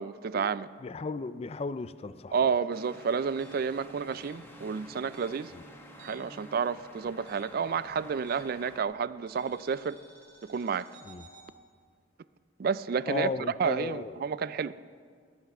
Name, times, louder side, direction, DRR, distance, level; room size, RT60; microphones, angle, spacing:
voice 1, 0.0-0.7 2.3-5.5 6.0-10.0 10.4-10.9 12.6-13.3 13.6-14.7, right 6 dB, 55° right, 17 dB, 0.3 m, -30 dB
voice 2, 0.8-2.5 5.5-5.6 11.0-11.3 13.1-14.2, left 3 dB, 35° left, 14 dB, 0.4 m, -35 dB
Bowed string instrument, 1.6-6.8, right 1 dB, 20° right, 2.8 m, -56 dB
sound 1, 2.7-8.8, left 1 dB, 10° left, 1.4 m, -51 dB
sound 2, 3.4-6.4 6.7-8.7 9.3-11.5, right 3 dB, 75° right, 2.6 m, -56 dB
19.0 x 8.2 x 6.0 m, 2.2 s
head